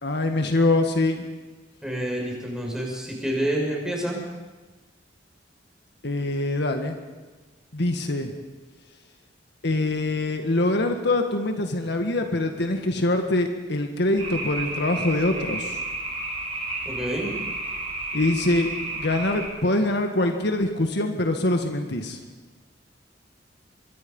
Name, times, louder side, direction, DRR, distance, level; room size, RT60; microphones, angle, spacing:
voice 1, 0.0-1.3 6.0-7.0 7.7-8.3 9.6-15.8 18.1-22.2, left 2 dB, 65° left, 5 dB, 1.8 m, -24 dB
voice 2, 1.8-4.2 16.8-17.3, right 1 dB, 5° right, -1 dB, 6.1 m, -28 dB
sound 1, 14.2-19.5, right 2 dB, 30° right, 6.2 m, -32 dB
24.5 x 23.5 x 5.5 m, 1.2 s
head